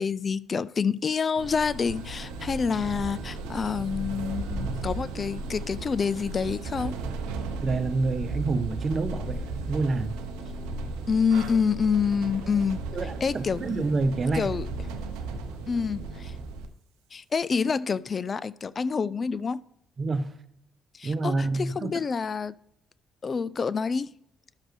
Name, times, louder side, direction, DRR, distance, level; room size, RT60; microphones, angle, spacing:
voice 1, 0.0-7.0 11.1-12.8 13.2-13.9 14.3-14.7 15.7-16.3 17.1-19.6 21.0-22.5 23.2-24.1, left 5 dB, 45° left, 0.3 m, -27 dB
sound 1, 1.4-16.7, right 3 dB, 80° right, 0.7 m, -35 dB
voice 2, 7.6-10.1 12.9-14.5 20.0-20.3 21.0-22.0, right 3 dB, 45° right, 0.8 m, -28 dB
12.0 x 6.3 x 3.2 m
hypercardioid pair, 50°, 0 cm